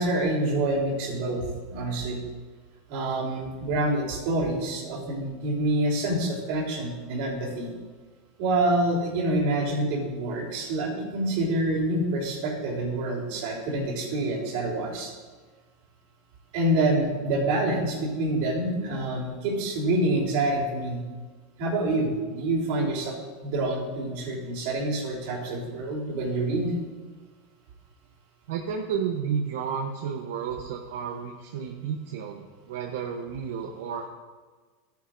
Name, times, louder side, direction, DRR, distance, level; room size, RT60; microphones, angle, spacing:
voice 1, 0.0-2.2 2.9-7.7 8.4-15.1 16.5-21.0 21.6-23.2 23.4-26.7, right 1 dB, 60° right, -2 dB, 3.3 m, -27 dB
voice 2, 28.5-34.1, right 7 dB, 80° right, 2 dB, 0.9 m, -32 dB
13.5 x 9.4 x 2.6 m, 1.4 s
supercardioid pair, 145°, 0 cm